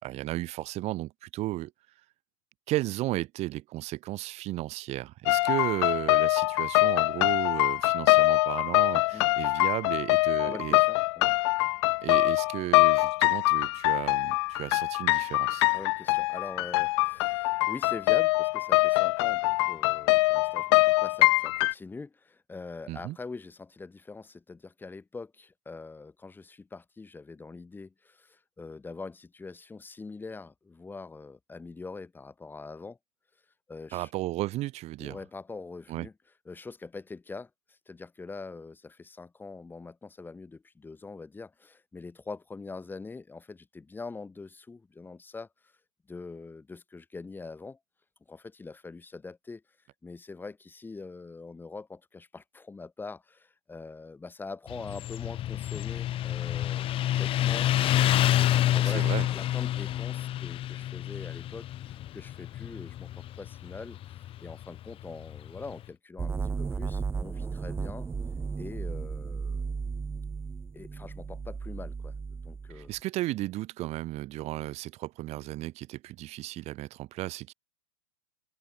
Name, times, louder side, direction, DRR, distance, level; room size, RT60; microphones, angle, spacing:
voice 1, 0.0-1.7 2.7-10.8 12.0-15.6 22.9-23.2 33.9-35.2 35.9-36.1 58.8-59.3 72.7-77.5, right 17 dB, 40° right, 5.3 m, -34 dB
sound 1, 5.3-21.7, left 22 dB, 50° left, 0.9 m, -24 dB
voice 2, 10.4-11.3 15.7-33.0 33.7-34.1 35.0-36.1 36.5-45.7 46.1-47.8 48.3-49.6 50.0-56.9 57.2-68.1 68.6-69.7 70.7-72.9, left 4 dB, 10° left, 6.8 m, -43 dB
Motorcycle, 54.7-65.8, left 13 dB, 30° left, 2.7 m, -28 dB
sound 2, 66.2-73.0, right 5 dB, 15° right, 1.5 m, -35 dB
hypercardioid pair, 105°, 18 cm